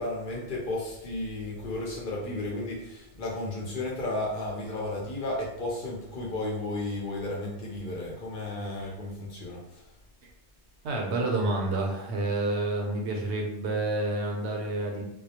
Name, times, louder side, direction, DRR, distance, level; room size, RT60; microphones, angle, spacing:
voice 1, 0.0-9.9, left 2 dB, 55° left, -3 dB, 0.7 m, -33 dB
voice 2, 10.8-15.0, right 2 dB, 75° right, 1 dB, 0.8 m, -29 dB
2.2 x 2.0 x 2.7 m, 0.86 s
omnidirectional pair, 1.2 m